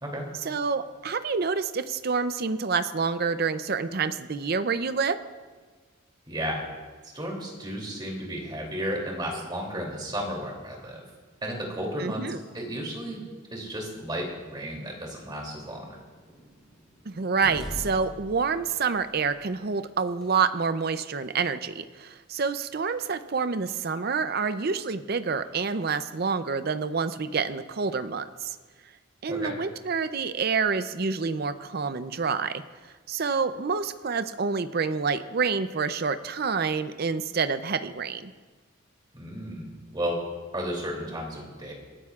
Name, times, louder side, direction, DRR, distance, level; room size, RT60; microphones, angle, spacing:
voice 1, 0.4-5.2 12.0-12.4 17.1-28.6 29.2-32.6 33.1-38.3, right 5 dB, 50° right, 11 dB, 0.5 m, -28 dB
voice 2, 6.3-6.6 7.0-11.0 11.4-12.2 12.5-16.0 29.3-29.6 39.1-40.2 40.5-41.7, equal, 20° right, -1 dB, 2.9 m, -33 dB
sound 1, 13.6-20.3, equal, ahead, 3.6 m, -45 dB
27.5 x 13.5 x 2.4 m, 1.4 s
head